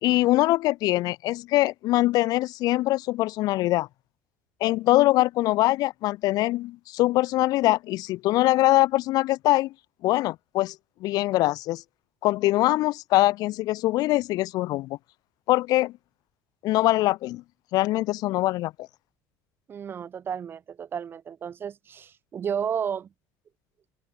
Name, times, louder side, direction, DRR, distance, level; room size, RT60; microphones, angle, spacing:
voice 1, 0.0-3.9 4.6-9.7 10.0-10.8 11.0-11.8 12.2-15.0 15.5-15.9 16.6-17.4 17.7-18.9, left 17 dB, 60° left, 0.4 m, -23 dB
voice 2, 19.7-23.1, right 7 dB, 30° right, 0.3 m, -32 dB
open air
cardioid pair, 120°, 7 cm